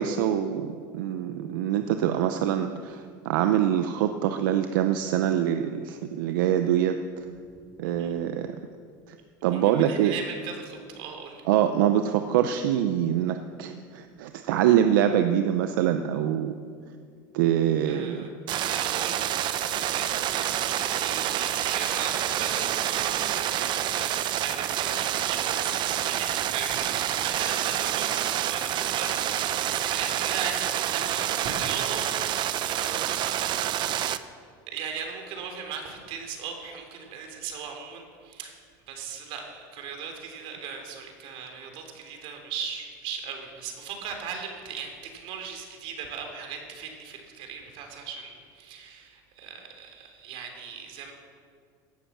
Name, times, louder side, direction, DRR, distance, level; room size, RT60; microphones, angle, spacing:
voice 1, 0.0-7.0 7.8-8.5 9.4-10.1 11.5-16.5 17.3-18.3, right 10 dB, 85° right, 7 dB, 0.8 m, -24 dB
voice 2, 9.5-11.4 17.8-18.3 18.6-32.1 32.6-33.8 34.7-38.6 38.9-51.1, right 6 dB, 65° right, 4 dB, 3.4 m, -38 dB
sound 1, 18.5-34.2, right 11 dB, 45° right, 0.8 m, -28 dB
17.0 x 10.5 x 7.3 m, 2.1 s
supercardioid pair, 120°, 10 cm